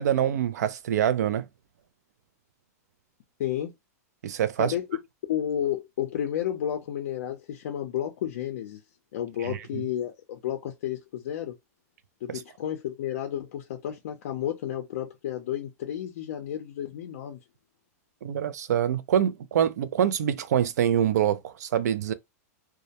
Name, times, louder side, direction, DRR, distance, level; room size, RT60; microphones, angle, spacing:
voice 1, 0.0-1.5 4.2-4.7 9.4-9.6 12.3-12.4 18.2-22.1, right 10 dB, 85° right, 0.4 m, -25 dB
voice 2, 3.4-3.7 4.6-5.0 5.3-8.8 9.1-11.6 12.2-17.4, left 10 dB, 60° left, 0.4 m, -31 dB
2.2 x 2.1 x 2.7 m
supercardioid pair, 165°, 9 cm